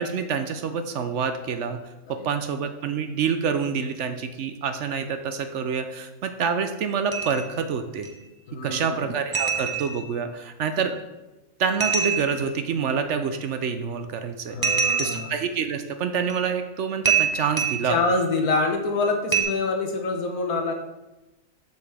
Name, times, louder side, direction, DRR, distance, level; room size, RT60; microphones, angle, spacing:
voice 1, 0.0-1.8 2.1-8.1 8.6-11.0 11.6-14.6 15.0-18.0, right 6 dB, 65° right, 8 dB, 0.8 m, -27 dB
sound 1, 7.1-7.6 8.0-8.1 9.3-10.2 11.8-12.5 14.6-15.4 16.3-16.4 17.0-18.0 19.3-19.4, right 6 dB, 20° right, 0.6 m, -25 dB
voice 2, 8.5-9.1 14.5-15.3 17.9-20.7, left 3 dB, 90° left, 3 dB, 1.5 m, -26 dB
8.0 x 7.0 x 3.4 m, 1.0 s
omnidirectional pair, 1.5 m